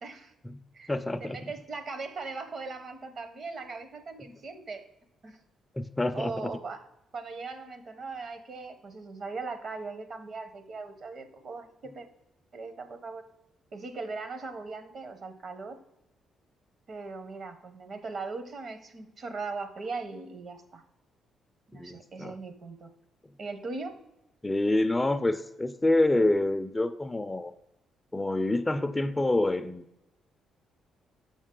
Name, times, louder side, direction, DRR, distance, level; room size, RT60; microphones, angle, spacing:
voice 1, 0.0-0.3 0.7-0.9 1.2-4.9 5.2-5.4 6.1-6.9 7.1-12.1 12.5-13.2 13.7-15.7 16.9-20.8 21.7-22.9 23.4-24.0, right 4 dB, 50° right, 9 dB, 0.8 m, -39 dB
voice 2, 0.9-1.4 5.8-6.5 21.7-22.4 24.4-27.5 28.1-29.8, left 2 dB, 15° left, 10 dB, 0.4 m, -27 dB
7.1 x 5.4 x 3.7 m, 0.89 s
cardioid pair, 90°, 0 cm